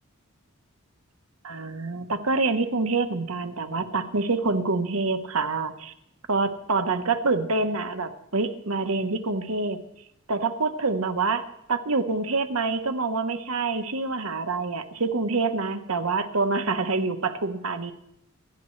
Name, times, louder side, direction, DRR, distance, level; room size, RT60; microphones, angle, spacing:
voice 1, 1.4-5.9 6.3-9.8 10.3-11.4 11.7-17.9, right 3 dB, 85° right, 7 dB, 1.2 m, -26 dB
27.5 x 11.5 x 3.3 m, 0.78 s
head